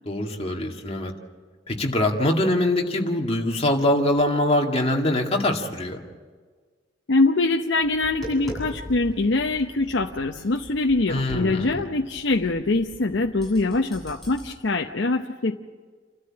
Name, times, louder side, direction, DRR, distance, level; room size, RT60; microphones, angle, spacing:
voice 1, 0.1-1.1 1.7-6.0 11.1-11.8, left 1 dB, 35° left, 1 dB, 2.1 m, -23 dB
voice 2, 7.1-15.6, left 2 dB, 75° left, 3 dB, 0.8 m, -23 dB
Tap, 7.8-14.5, equal, ahead, 7.1 m, -41 dB
28.5 x 13.0 x 8.7 m, 1.5 s
head